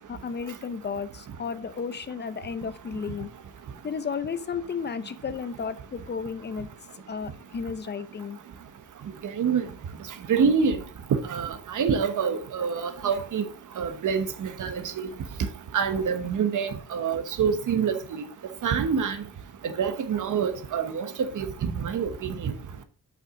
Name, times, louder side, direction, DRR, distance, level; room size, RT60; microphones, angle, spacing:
voice 1, 0.1-3.3 3.8-6.7 7.1-8.4, left 6 dB, 30° left, 0.6 m, -33 dB
voice 2, 10.3-10.8 11.3-13.4 13.8-15.1 15.7-18.2 18.6-19.2 19.8-21.1 21.3-22.5, right 6 dB, 65° right, 1.1 m, -26 dB
8.1 x 5.9 x 3.7 m
wide cardioid pair, 155°, 32 cm